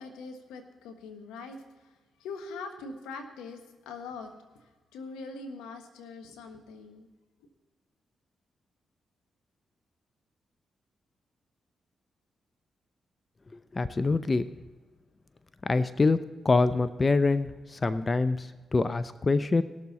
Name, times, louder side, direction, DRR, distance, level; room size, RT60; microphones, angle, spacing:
voice 1, 0.0-4.3 4.6-7.1, left 4 dB, 90° left, 6 dB, 1.2 m, -43 dB
voice 2, 13.7-14.5 15.6-19.6, left 3 dB, 35° left, 14 dB, 0.5 m, -25 dB
18.5 x 6.9 x 4.1 m, 1.3 s
supercardioid pair, 50°, 0 cm